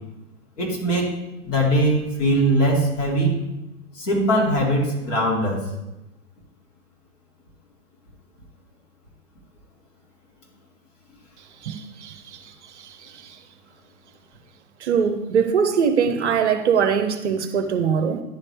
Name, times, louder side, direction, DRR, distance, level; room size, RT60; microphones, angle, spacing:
voice 1, 0.6-1.1 1.4-3.4 4.0-5.6, right 1 dB, 50° left, -3 dB, 2.6 m, -21 dB
voice 2, 11.6-13.4 14.8-18.2, right 7 dB, 45° right, 7 dB, 0.7 m, -22 dB
10.5 x 4.1 x 3.4 m, 0.96 s
figure-of-eight pair, 115°, 47 cm